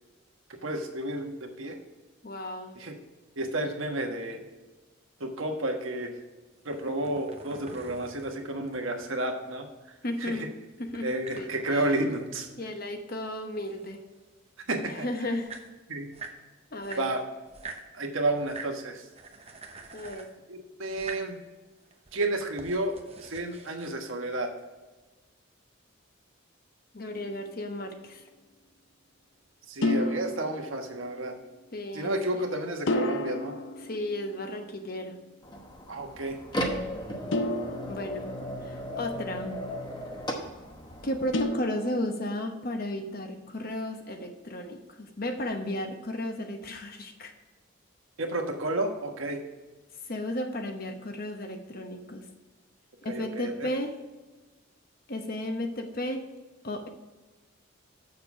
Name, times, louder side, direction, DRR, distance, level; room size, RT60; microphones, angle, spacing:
voice 1, 0.6-1.8 2.7-3.0 3.3-4.4 5.2-6.2 6.6-9.7 10.2-10.5 11.0-12.5 14.7-15.1 15.9-16.1 17.0-17.2 17.9-19.1 20.5-21.4 22.1-24.5 29.7-31.3 31.9-33.5 35.9-36.4 48.2-49.4 53.0-53.7, right 1 dB, 80° right, 3 dB, 1.4 m, -31 dB
voice 2, 2.2-2.8 10.0-10.5 10.8-11.9 12.6-14.0 14.8-15.5 16.7-17.1 19.9-20.3 26.9-28.2 31.7-32.4 33.8-35.2 37.9-38.3 38.6-39.6 41.0-47.3 50.1-52.3 53.0-54.0 55.1-56.2 56.6-56.9, left 1 dB, 45° left, 5 dB, 1.0 m, -34 dB
sound 1, 6.6-9.0 10.9-13.0 13.2-14.5 15.1-15.2 15.3-16.4 16.8-17.9 18.4-18.8 19.1-20.4 20.9-21.3 21.8-23.9, right 4 dB, 30° right, 0.8 m, -46 dB
sound 2, 27.1-27.6 29.8-31.3 32.9-34.8 37.3-39.0 41.3-42.5, left 1 dB, 65° left, 0.6 m, -32 dB
sound 3, 35.4-41.4, equal, 20° left, 1.0 m, -35 dB
7.4 x 6.7 x 4.8 m, 1.2 s
head